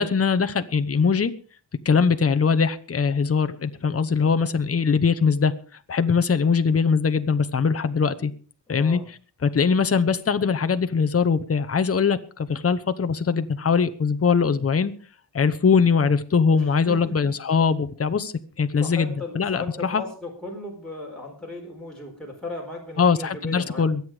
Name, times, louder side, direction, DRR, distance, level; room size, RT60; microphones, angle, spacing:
voice 1, 0.0-1.3 1.8-5.5 5.9-8.3 8.7-9.0 9.4-14.9 15.3-20.0 23.0-24.0, left 5 dB, 35° left, 1.0 m, -21 dB
voice 2, 8.7-9.1 16.9-17.2 18.8-23.9, left 2 dB, ahead, 4.4 m, -36 dB
22.5 x 8.2 x 4.9 m
wide cardioid pair, 100°, 40 cm